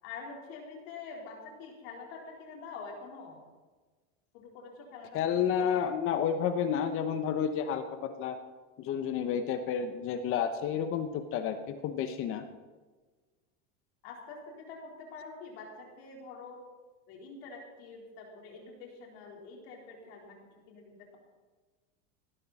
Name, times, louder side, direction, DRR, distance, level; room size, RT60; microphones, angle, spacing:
voice 1, 0.0-3.4 4.3-5.9 14.0-16.6 17.1-21.2, left 4 dB, 65° left, 0 dB, 4.2 m, -46 dB
voice 2, 5.1-8.4 8.8-12.4, left 8 dB, 40° left, 9 dB, 1.0 m, -30 dB
18.0 x 12.0 x 4.3 m, 1.3 s
supercardioid pair, 135°, 34 cm